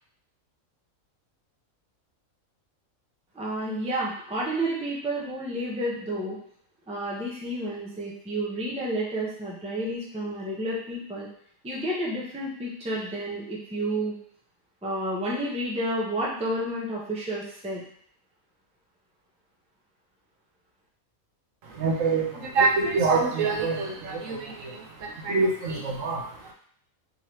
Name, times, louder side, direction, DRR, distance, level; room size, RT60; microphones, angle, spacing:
voice 1, 3.3-6.4 6.9-11.3 11.6-14.2 14.8-17.8, right 1 dB, 5° right, -4 dB, 0.5 m, -30 dB
voice 2, 21.6-26.5, right 4 dB, 70° right, 1 dB, 1.0 m, -26 dB
3.6 x 3.0 x 3.1 m, 0.62 s
omnidirectional pair, 1.5 m